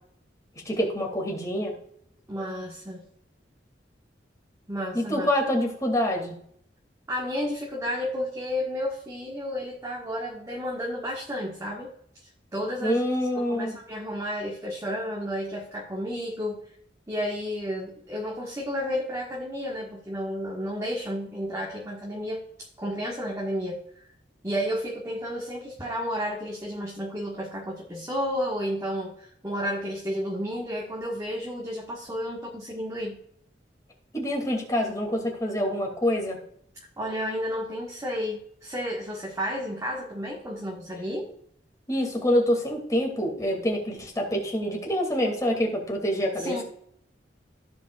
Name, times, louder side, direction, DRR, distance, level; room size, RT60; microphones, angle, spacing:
voice 1, 0.6-1.7 4.9-6.4 12.8-13.8 34.1-36.4 41.9-46.6, equal, 20° left, 0 dB, 2.6 m, -26 dB
voice 2, 2.3-3.0 4.7-5.3 7.1-11.9 12.5-13.0 13.3-16.6 17.1-23.8 24.4-33.2 36.8-41.3 46.4-46.6, equal, 20° right, -4 dB, 1.6 m, -32 dB
16.0 x 5.3 x 2.5 m, 0.66 s
head